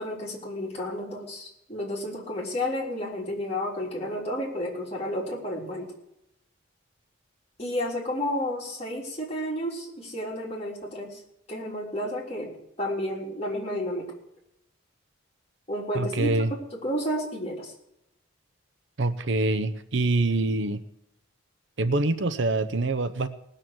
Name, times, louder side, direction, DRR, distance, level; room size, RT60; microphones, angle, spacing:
voice 1, 0.0-5.9 7.6-11.2 11.5-12.5 12.8-14.1 15.7-16.3 16.7-17.7, equal, 30° left, -3 dB, 3.5 m, -31 dB
voice 2, 15.9-16.5 19.0-20.8 21.8-23.3, right 2 dB, 60° right, 12 dB, 0.7 m, -25 dB
18.5 x 6.6 x 7.7 m, 0.82 s
head